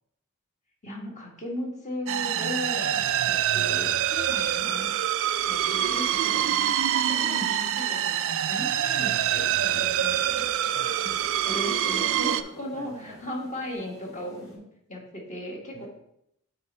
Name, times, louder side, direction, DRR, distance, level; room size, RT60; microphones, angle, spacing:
voice 1, 0.8-3.0 3.2-5.0 5.5-6.7 7.0-10.4 11.5-14.6 14.9-15.9, left 1 dB, 35° left, -1 dB, 1.7 m, -37 dB
sound 1, 2.1-12.4, right 10 dB, 60° right, 0.3 m, -25 dB
sound 2, 5.7-13.8, left 3 dB, 55° left, 1.3 m, -54 dB
sound 3, 9.3-14.6, left 1 dB, 15° left, 1.9 m, -52 dB
voice 2, 10.7-11.6 12.7-13.3 15.7-15.9, right 2 dB, 30° right, 2 dB, 0.8 m, -46 dB
9.4 x 3.5 x 4.2 m, 0.76 s
head